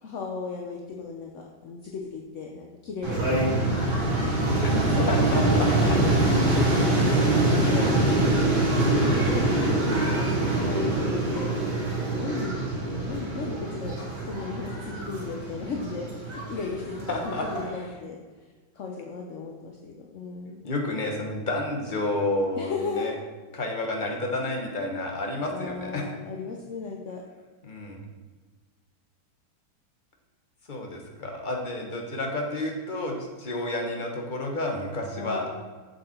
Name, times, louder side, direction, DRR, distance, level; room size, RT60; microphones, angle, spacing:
voice 1, 0.0-4.1 4.7-6.7 7.1-11.5 12.0-13.9 14.3-18.2 18.7-20.6 22.6-23.1 25.5-27.2 35.1-35.6, left 4 dB, 55° left, 0 dB, 0.8 m, -36 dB
sound 1, 3.0-17.7, right 2 dB, 75° right, 3.5 m, -24 dB
voice 2, 5.1-6.6 17.1-17.9 20.6-23.1 23.5-26.2 27.6-28.0 30.7-35.6, left 2 dB, 30° left, 1 dB, 1.2 m, -31 dB
7.5 x 7.3 x 4.4 m, 1.4 s
omnidirectional pair, 2.1 m